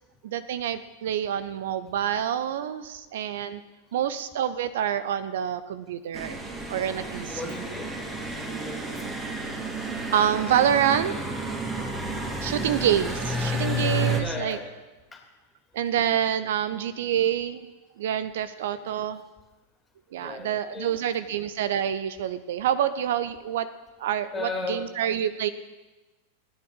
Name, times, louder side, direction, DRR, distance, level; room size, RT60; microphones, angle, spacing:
voice 1, 0.2-3.6 3.9-6.4 6.7-7.5 10.1-11.1 12.4-14.6 15.7-17.7 18.0-19.2 20.1-23.7 24.0-25.5, right 9 dB, 55° right, 13 dB, 0.6 m, -27 dB
sound 1, 6.1-14.2, right 1 dB, 15° right, 2.4 m, -31 dB
voice 2, 7.3-7.9 8.4-9.1 12.6-12.7 14.1-14.7 15.1-15.2 18.9-19.0 20.2-20.9 21.2-21.3 24.3-24.8, left 3 dB, 15° left, 3 dB, 2.8 m, -36 dB
16.0 x 10.5 x 6.5 m, 1.2 s
figure-of-eight pair, 90°, 0 cm